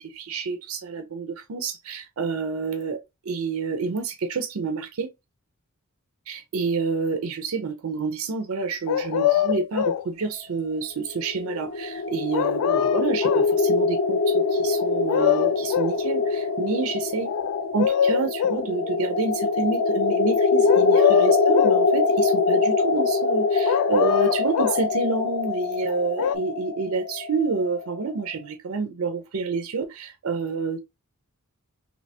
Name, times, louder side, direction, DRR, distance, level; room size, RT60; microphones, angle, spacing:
voice 1, 0.0-5.1 6.3-17.3 17.7-30.8, right 4 dB, 70° right, 0.5 m, -28 dB
sound 1, 8.9-10.1 12.3-13.5 14.8-16.0 17.2-18.7 20.7-21.8 23.7-24.9 25.9-26.4, left 10 dB, 85° left, 0.3 m, -24 dB
sound 2, 11.1-28.0, left 4 dB, 60° left, 0.7 m, -23 dB
3.2 x 2.8 x 2.7 m
head